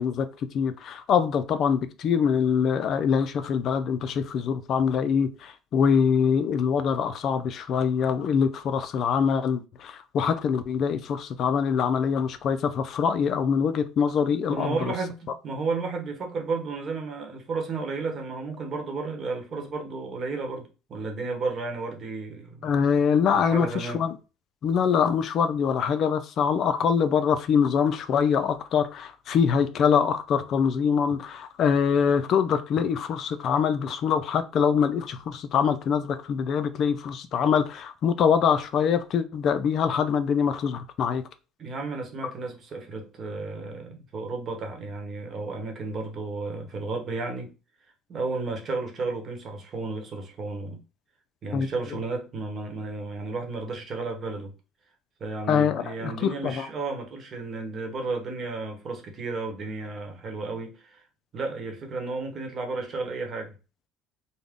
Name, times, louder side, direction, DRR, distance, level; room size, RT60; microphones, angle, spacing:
voice 1, 0.0-14.9 22.6-24.2 24.6-41.2 51.5-51.7 55.5-56.7, left 7 dB, 50° left, 0.3 m, -24 dB
voice 2, 14.5-22.8 23.3-24.0 41.6-47.5 48.1-50.8 51.4-54.5 55.2-61.0 61.3-63.6, right 3 dB, 40° right, 1.0 m, -33 dB
3.5 x 2.1 x 3.6 m
cardioid pair, 120°, 0 cm